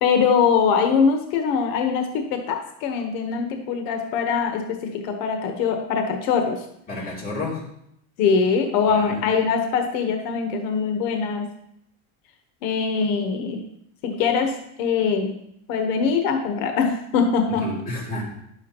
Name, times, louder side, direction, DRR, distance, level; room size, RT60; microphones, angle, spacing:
voice 1, 0.0-6.6 8.2-11.5 12.6-13.6 14.0-15.3 15.7-17.8, left 6 dB, 85° left, 5 dB, 1.2 m, -22 dB
voice 2, 6.9-7.6 8.9-9.2 17.5-18.2, left 2 dB, 20° left, -5 dB, 2.9 m, -31 dB
10.5 x 7.2 x 3.0 m, 0.75 s
cardioid pair, 145°, 45 cm